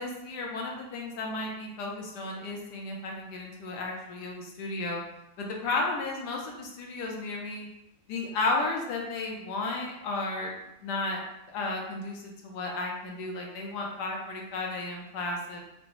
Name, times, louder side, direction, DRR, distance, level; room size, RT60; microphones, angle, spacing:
voice 1, 0.0-5.0 5.4-7.7 8.1-10.5 10.8-11.2 11.5-15.6, left 2 dB, 90° left, 0 dB, 1.3 m, -33 dB
4.9 x 2.0 x 3.0 m, 0.86 s
omnidirectional pair, 1.7 m